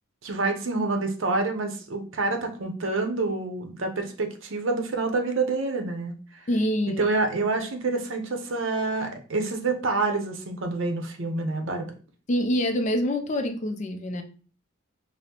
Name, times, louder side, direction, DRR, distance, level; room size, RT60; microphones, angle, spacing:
voice 1, 0.2-6.2 7.0-11.9, right 3 dB, 90° right, 0.7 m, -27 dB
voice 2, 6.5-7.0 12.3-14.2, equal, 35° left, 0.4 m, -25 dB
5.2 x 2.0 x 2.9 m
head